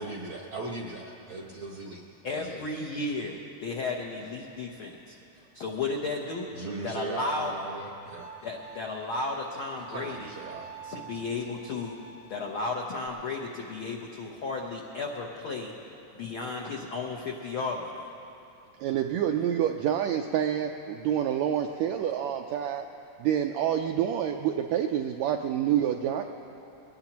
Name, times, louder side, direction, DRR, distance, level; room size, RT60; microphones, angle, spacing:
voice 1, 0.0-2.0 2.3-2.6 6.5-8.3 9.9-11.4, right 3 dB, 65° right, -1 dB, 1.2 m, -39 dB
voice 2, 2.2-5.1 5.5-6.5 6.8-7.5 8.4-10.3 10.8-12.0 12.3-15.7 16.1-17.9, left 3 dB, 80° left, 0 dB, 1.1 m, -34 dB
Bowed string instrument, 8.1-13.1, right 5 dB, 60° left, 2.2 m, -48 dB
voice 3, 18.8-22.8 23.2-26.2, right 10 dB, 85° right, 4 dB, 1.6 m, -27 dB
22.0 x 18.5 x 2.9 m, 2.7 s
omnidirectional pair, 3.7 m